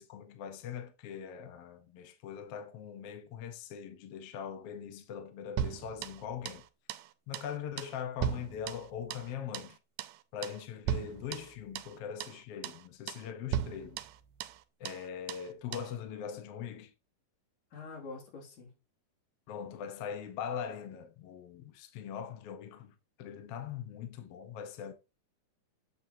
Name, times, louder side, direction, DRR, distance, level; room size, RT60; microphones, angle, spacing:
voice 1, 0.0-6.6 7.3-9.8 10.3-14.0 14.8-16.9 19.5-24.9, left 8 dB, 65° left, 1.7 m, -41 dB
sound 1, 5.6-6.6 6.9-7.1 7.3-7.5 7.8-9.3 9.5-9.7 10.0-10.2 10.4-10.6 10.9-11.9 12.2-12.4 12.6-12.8 13.1-13.3 13.5-14.6 14.9-15.0 15.3-15.5 15.7-15.9, right 10 dB, 90° right, 2.3 m, -37 dB
voice 2, 17.7-18.7, left 4 dB, 85° left, 4.1 m, -45 dB
7.6 x 7.5 x 2.7 m
omnidirectional pair, 3.7 m